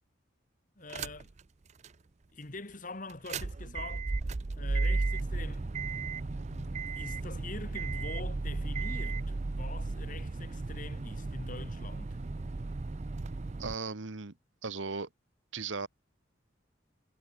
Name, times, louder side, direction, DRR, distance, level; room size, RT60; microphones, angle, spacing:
voice 1, 0.8-1.3 2.3-4.0 4.6-5.7 6.0-12.2, left 2 dB, 40° left, 2.1 m, -45 dB
sound 1, 0.9-1.4 1.8-1.9 3.1-13.7, right 3 dB, 35° right, 0.5 m, -34 dB
voice 2, 13.6-14.4 14.6-15.1 15.5-15.9, right 4 dB, 75° right, 1.3 m, -36 dB
head